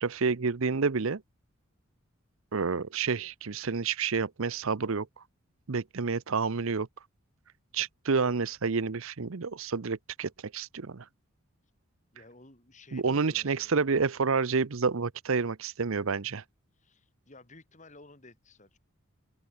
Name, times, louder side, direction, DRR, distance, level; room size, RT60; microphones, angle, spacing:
voice 1, 0.0-1.2 2.5-5.2 5.7-6.9 7.7-11.1 12.9-16.4, right 5 dB, 65° right, 0.7 m, -29 dB
voice 2, 12.1-13.7 16.8-18.8, left 2 dB, 35° left, 3.6 m, -54 dB
open air
head